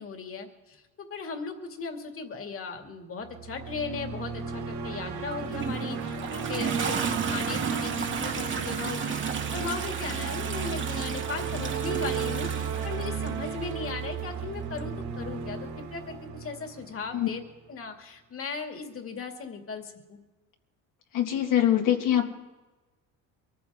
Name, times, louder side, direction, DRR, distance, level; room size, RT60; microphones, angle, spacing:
voice 1, 0.0-17.4 17.7-20.2, left 5 dB, 40° left, 4 dB, 2.4 m, -37 dB
sound 1, 3.2-17.4, right 6 dB, 55° right, 2.2 m, -34 dB
Toilet flush, 5.3-13.7 14.8-14.9, right 6 dB, 35° right, 1.5 m, -33 dB
voice 2, 21.1-22.3, left 11 dB, 65° left, 1 dB, 2.3 m, -23 dB
23.5 x 14.5 x 3.7 m, 1.2 s
cardioid pair, 105°, 35 cm